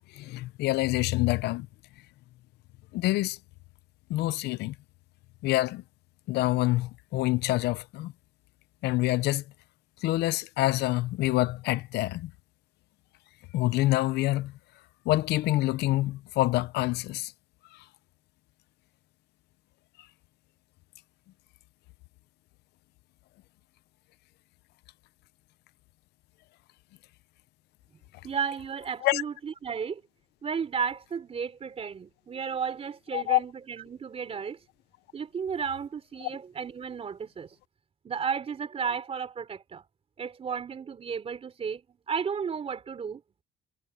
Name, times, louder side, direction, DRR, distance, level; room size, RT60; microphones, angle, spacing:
voice 1, 0.0-1.7 2.9-3.4 4.1-4.7 5.4-5.8 6.3-8.1 8.8-9.4 10.0-12.3 13.5-14.5 15.1-17.3 17.7-17.8 29.0-29.2 33.1-33.4 36.2-36.3, left 17 dB, 80° left, 0.6 m, -26 dB
voice 2, 28.2-30.0 30.4-34.6 35.1-37.5 38.0-39.8 40.2-41.8 42.1-43.4, right 6 dB, 35° right, 3.6 m, -33 dB
cardioid pair, 110°, 17 cm